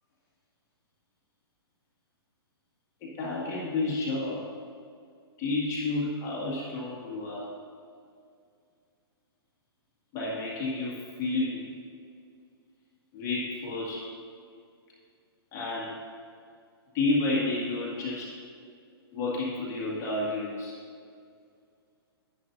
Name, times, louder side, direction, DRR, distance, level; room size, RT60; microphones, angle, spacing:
voice 1, 3.0-4.4 5.4-7.5 10.1-11.7 13.1-14.0 15.5-16.0 16.9-18.3 19.1-20.8, left 2 dB, 25° left, -6 dB, 2.1 m, -30 dB
10.5 x 10.5 x 2.7 m, 2.3 s
hypercardioid pair, 150°, 14 cm